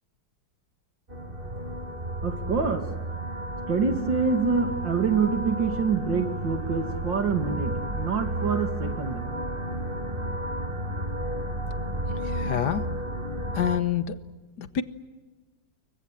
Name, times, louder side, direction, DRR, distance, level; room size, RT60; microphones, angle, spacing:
sound 1, 1.1-13.8, right 1 dB, 30° right, 2.2 m, -32 dB
voice 1, 1.6-2.9 3.7-9.3, right 5 dB, 85° right, 5 dB, 3.2 m, -26 dB
voice 2, 12.2-12.9 13.5-14.2 14.6-14.8, left 9 dB, 65° left, 11 dB, 1.7 m, -27 dB
30.0 x 23.0 x 7.5 m, 1.2 s
omnidirectional pair, 2.0 m